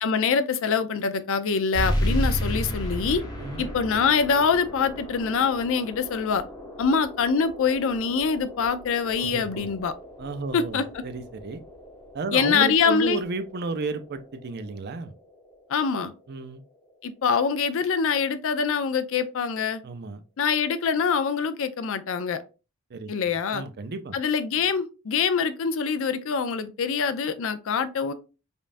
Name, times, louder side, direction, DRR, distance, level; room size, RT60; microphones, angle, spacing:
voice 1, 0.0-3.2 3.6-6.4 6.8-9.9 10.5-10.8 12.3-13.2 15.7-16.1 17.0-19.8 20.4-22.4 23.1-23.6 24.1-28.1, left 6 dB, 65° left, 0.4 m, -24 dB
sound 1, 1.7-16.8, equal, 20° left, 0.8 m, -34 dB
voice 2, 9.1-9.7 10.2-11.6 12.1-15.1 16.3-16.6 19.8-20.2 22.9-23.1 23.5-24.2, right 3 dB, 50° right, 0.5 m, -33 dB
5.2 x 2.3 x 2.5 m
head